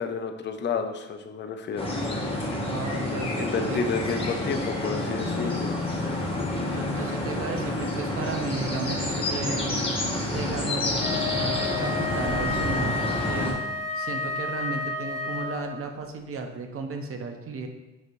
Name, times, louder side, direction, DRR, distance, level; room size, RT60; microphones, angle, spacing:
voice 1, 0.0-1.9 3.4-5.8, left 5 dB, 35° left, 6 dB, 0.4 m, -30 dB
sound 1, 1.8-13.5, left 1 dB, 20° left, 0.9 m, -29 dB
voice 2, 2.7-4.1 6.7-9.8 10.2-11.0 11.8-13.5 13.9-17.7, right 4 dB, 45° right, 4 dB, 0.6 m, -34 dB
sound 2, 5.2-9.8 10.2-10.3 10.6-12.8, left 2 dB, 90° right, 1.2 m, -39 dB
Wind instrument woodwind instrument, 11.0-15.9, left 3 dB, 10° right, 0.8 m, -31 dB
4.8 x 2.8 x 2.6 m, 1.0 s
cardioid pair, 90°, 30 cm